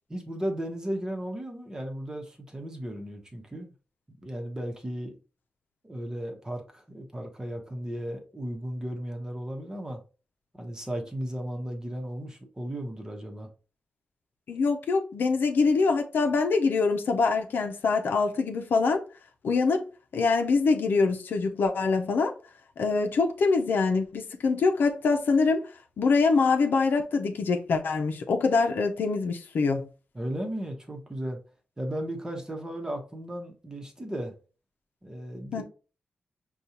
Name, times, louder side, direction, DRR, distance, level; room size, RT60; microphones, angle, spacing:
voice 1, 0.1-3.7 4.2-5.1 5.8-10.0 10.6-13.5 30.1-31.4 31.8-34.3 35.0-35.6, right 1 dB, 20° right, 1.0 m, -35 dB
voice 2, 14.5-19.0 19.4-19.8 20.1-22.3 22.8-25.7 26.0-29.9 35.5-35.6, left 4 dB, 80° left, 0.6 m, -24 dB
5.2 x 2.4 x 2.9 m
wide cardioid pair, 95°, 3 cm